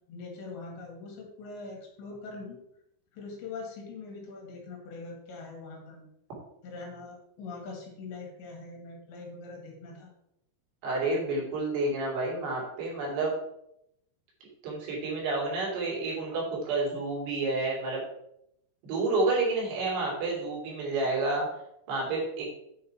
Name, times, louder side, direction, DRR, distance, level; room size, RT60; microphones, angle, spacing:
voice 1, 0.1-2.6 3.1-6.1 6.6-10.1, left 3 dB, 75° left, 0 dB, 4.3 m, -42 dB
voice 2, 10.8-13.3 14.6-18.0 18.8-21.5 21.9-22.5, right 3 dB, 65° right, -4 dB, 5.0 m, -29 dB
9.0 x 6.4 x 4.4 m, 0.78 s
omnidirectional pair, 5.2 m